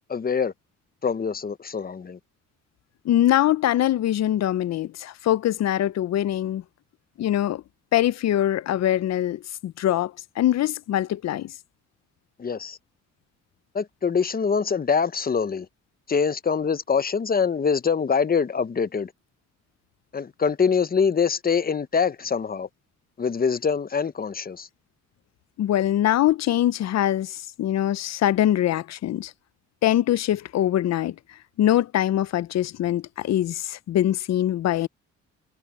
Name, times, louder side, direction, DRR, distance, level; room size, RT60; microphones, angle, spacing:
voice 1, 0.1-0.5 1.0-2.2 12.4-12.8 13.7-15.7 16.1-19.1 20.1-22.7 23.2-24.7, left 6 dB, 30° left, 0.9 m, -24 dB
voice 2, 3.0-6.6 7.2-7.6 7.9-11.5 25.6-29.3 29.8-31.1 31.6-34.9, left 12 dB, 60° left, 0.7 m, -23 dB
cardioid pair, 90°, 30 cm